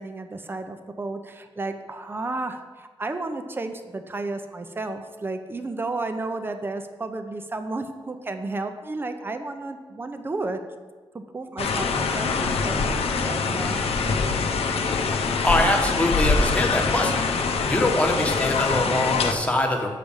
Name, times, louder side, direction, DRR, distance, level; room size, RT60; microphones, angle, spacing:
voice 1, 0.0-10.6 11.1-13.8 14.6-14.8, right 2 dB, 20° right, 8 dB, 0.6 m, -32 dB
sound 1, 11.6-19.3, left 4 dB, 85° left, 0.8 m, -24 dB
voice 2, 15.4-17.1 17.7-19.9, left 1 dB, 15° left, 1 dB, 1.1 m, -23 dB
7.4 x 5.1 x 7.1 m, 1.4 s
wide cardioid pair, 155°, 10 cm